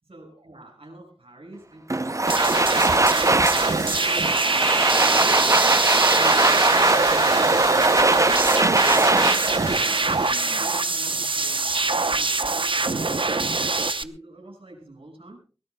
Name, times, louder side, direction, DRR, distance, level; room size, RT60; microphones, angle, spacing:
voice 1, 0.0-5.4 5.9-10.0 10.3-13.2 13.6-15.4, right 1 dB, 80° right, 2 dB, 6.2 m, -46 dB
Domestic sounds home sounds, 1.9-10.8, right 2 dB, 35° right, 0.7 m, -21 dB
sound 1, 2.3-14.0, right 3 dB, 65° right, 0.9 m, -23 dB
23.0 x 18.5 x 2.3 m, 0.35 s
wide cardioid pair, 50°, 10 cm